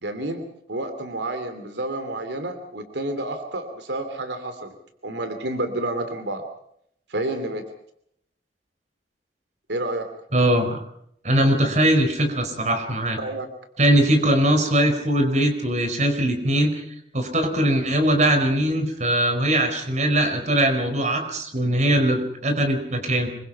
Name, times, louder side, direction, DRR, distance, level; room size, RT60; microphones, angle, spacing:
voice 1, 0.0-0.4 0.7-4.7 5.0-6.4 7.1-7.6 9.7-10.1 13.2-13.5, right 1 dB, 80° right, 8 dB, 2.8 m, -29 dB
voice 2, 10.3-10.8 11.2-13.2 13.8-16.7 17.1-23.3, right 1 dB, 40° right, 7 dB, 4.5 m, -21 dB
26.0 x 23.0 x 5.6 m, 0.71 s
head